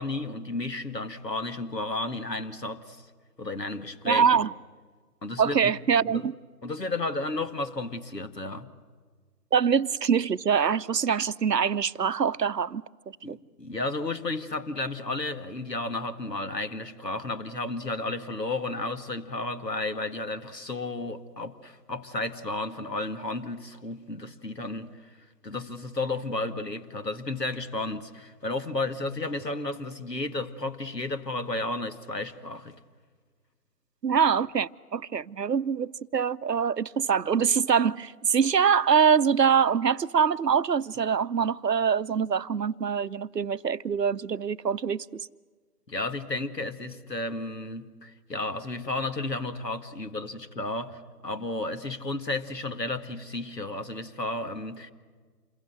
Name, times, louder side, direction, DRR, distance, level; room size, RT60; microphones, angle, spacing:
voice 1, 0.0-3.0 3.4-4.4 5.2-5.7 6.1-6.2 6.6-8.7 13.2-25.0 25.4-32.8 45.9-54.9, left 2 dB, 90° left, 2.1 m, -33 dB
voice 2, 4.1-4.5 5.4-6.3 9.5-12.8 13.3-13.4 34.0-45.0, right 7 dB, 90° right, 0.8 m, -24 dB
28.0 x 22.0 x 7.9 m
figure-of-eight pair, 150°, 48 cm